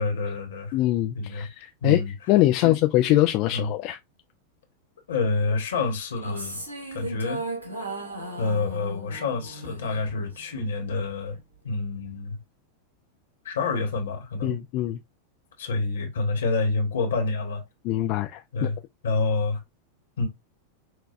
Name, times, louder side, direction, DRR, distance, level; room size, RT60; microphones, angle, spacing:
voice 1, 0.0-0.7 1.1-1.5 1.8-2.1 2.6-2.7 3.5-3.7 5.1-6.6 6.9-7.4 8.4-11.4 11.6-12.4 13.4-14.6 15.6-17.6 18.5-18.8 19.0-19.6 20.2-20.3, left 3 dB, 65° left, 1.2 m, -27 dB
voice 2, 0.7-2.0 2.3-4.0 14.4-15.0 17.8-18.7, left 15 dB, 40° left, 0.3 m, -23 dB
sound 1, 6.1-10.6, right 2 dB, 75° right, 1.1 m, -36 dB
5.8 x 2.2 x 2.4 m
figure-of-eight pair, 90°, 0 cm